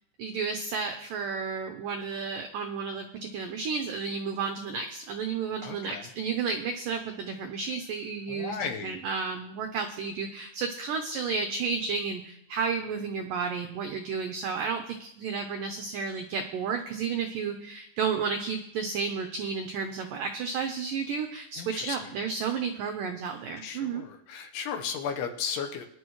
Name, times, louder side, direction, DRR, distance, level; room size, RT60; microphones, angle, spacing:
voice 1, 0.2-24.0, right 5 dB, 90° right, 4 dB, 1.9 m, -32 dB
voice 2, 5.6-6.1 8.3-9.0 21.6-22.1 23.6-25.9, left 7 dB, 75° left, 4 dB, 2.9 m, -35 dB
21.0 x 11.0 x 3.1 m, 0.76 s
omnidirectional pair, 5.1 m